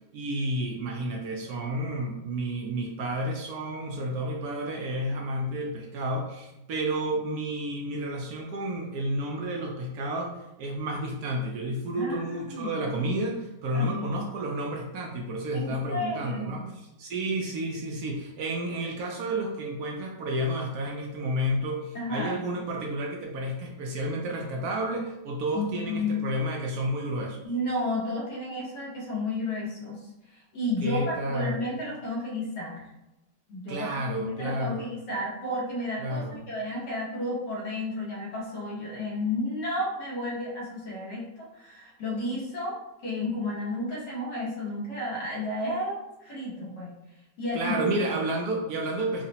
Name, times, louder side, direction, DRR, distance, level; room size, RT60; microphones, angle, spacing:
voice 1, 0.1-10.3 10.6-27.4 30.8-31.6 33.7-34.8 36.0-36.4 47.5-49.3, right 1 dB, 70° right, 0 dB, 1.0 m, -31 dB
voice 2, 11.9-12.8 13.7-14.1 15.5-16.8 22.0-22.4 25.5-26.2 27.4-32.9 33.5-46.9 47.4-48.0, left 1 dB, 80° left, -5 dB, 1.9 m, -32 dB
4.7 x 2.1 x 2.7 m, 0.91 s
omnidirectional pair, 1.9 m